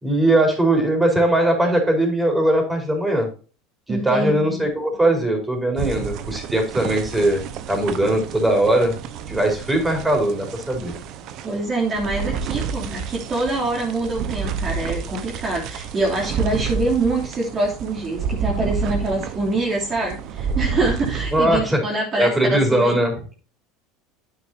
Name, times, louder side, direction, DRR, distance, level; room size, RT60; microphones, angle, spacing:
voice 1, 0.0-3.3 3.9-7.4 7.7-8.9 9.3-10.9 21.3-21.8 22.2-23.1, right 1 dB, 10° right, 2 dB, 4.6 m, -20 dB
voice 2, 3.9-4.7 11.4-22.9, right 2 dB, 35° right, -3 dB, 3.2 m, -25 dB
sound 1, 5.8-21.7, right 6 dB, 55° right, 1.1 m, -30 dB
9.5 x 9.3 x 2.8 m, 0.36 s
supercardioid pair, 105°, 0 cm